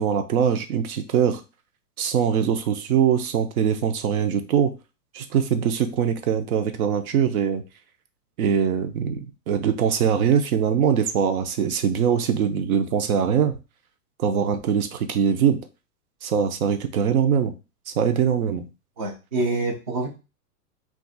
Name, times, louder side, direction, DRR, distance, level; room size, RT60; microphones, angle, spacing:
voice 1, 0.0-1.4 2.0-4.7 5.1-7.6 8.4-13.6 14.2-15.6 16.2-17.5 18.0-18.7, right 8 dB, 65° right, 8 dB, 0.7 m, -22 dB
voice 2, 19.0-20.1, right 2 dB, 25° right, -1 dB, 0.4 m, -26 dB
2.5 x 2.4 x 3.9 m, 0.29 s
supercardioid pair, 160°, 46 cm